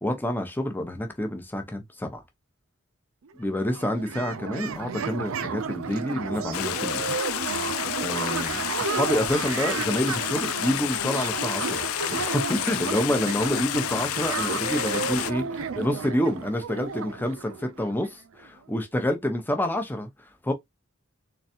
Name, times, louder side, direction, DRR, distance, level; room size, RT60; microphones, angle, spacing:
voice 1, 0.0-2.2 3.4-7.1 8.0-11.8 12.1-20.5, left 1 dB, 10° left, 0.8 m, -28 dB
sound 1, 3.3-3.4 3.5-18.1, right 5 dB, 70° right, 0.5 m, -32 dB
Stream, 6.5-15.3, left 13 dB, 80° left, 0.4 m, -30 dB
4.0 x 3.2 x 2.8 m
head